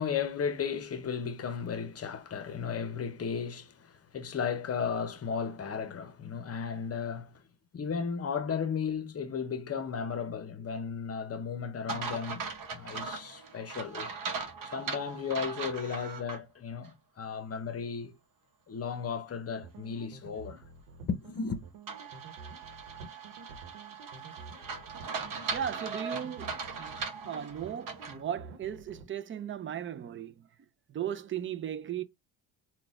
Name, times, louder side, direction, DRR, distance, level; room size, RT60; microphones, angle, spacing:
voice 1, 0.0-7.4 7.7-14.1 14.7-18.1 18.7-20.6 21.1-21.6, left 6 dB, 30° left, 0.8 m, -35 dB
sound 1, 11.9-16.4 16.8-16.9 21.9-28.2, right 5 dB, 45° right, 1.0 m, -39 dB
sound 2, 19.6-29.0, right 4 dB, 85° right, 1.0 m, -49 dB
voice 2, 25.5-30.5 30.9-32.0, right 9 dB, 30° right, 0.4 m, -37 dB
4.0 x 2.3 x 3.5 m
supercardioid pair, 85°, 47 cm